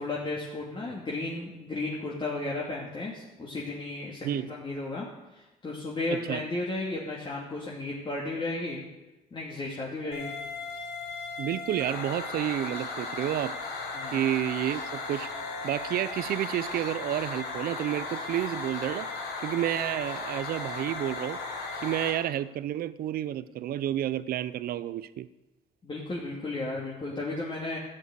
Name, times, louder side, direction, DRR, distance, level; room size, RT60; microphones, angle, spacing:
voice 1, 0.0-5.1 5.3-8.8 9.3-10.4 13.9-14.2 25.8-27.8, left 2 dB, 30° left, -4 dB, 2.7 m, -34 dB
voice 2, 6.1-6.4 11.4-13.5 14.1-15.3 15.6-19.1 19.4-21.4 21.8-25.3, right 12 dB, 60° right, 15 dB, 0.7 m, -30 dB
sound 1, 10.1-22.1, left 3 dB, 70° left, 5.1 m, -36 dB
12.5 x 9.1 x 8.1 m, 1.0 s
cardioid pair, 110°, 17 cm